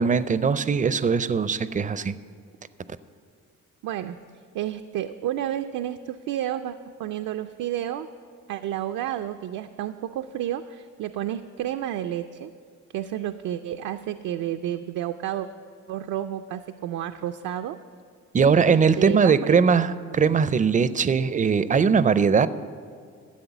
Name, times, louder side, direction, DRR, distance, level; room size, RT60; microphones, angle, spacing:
voice 1, 0.0-2.1 18.3-22.5, right 6 dB, 25° right, 15 dB, 0.4 m, -20 dB
voice 2, 3.8-4.2 4.5-8.1 8.5-12.5 12.9-15.5 15.9-17.8 18.3-19.6, right 11 dB, 80° right, 8 dB, 0.5 m, -31 dB
13.0 x 7.7 x 7.0 m, 2.1 s
cardioid pair, 90°, 30 cm